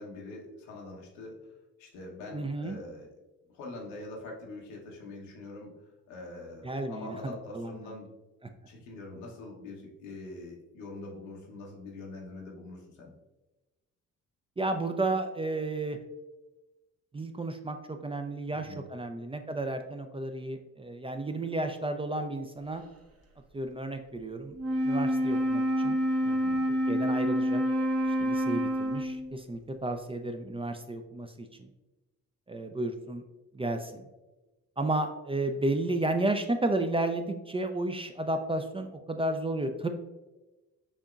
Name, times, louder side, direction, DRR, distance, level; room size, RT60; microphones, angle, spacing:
voice 1, 0.0-1.5 1.8-3.1 3.5-8.1 8.7-13.1 18.5-18.8 26.2-26.6, left 2 dB, 85° left, -1 dB, 1.0 m, -44 dB
voice 2, 2.3-2.8 6.6-7.9 14.6-16.0 17.1-22.8 23.5-24.6 24.8-26.0 26.9-27.6 28.2-31.7 32.5-33.2 33.5-34.1 34.8-39.9, right 2 dB, 15° right, 6 dB, 0.4 m, -32 dB
Wind instrument woodwind instrument, 24.5-29.3, equal, 40° right, 1.0 m, -27 dB
6.3 x 2.8 x 2.4 m, 1.1 s
hypercardioid pair, 50°, 39 cm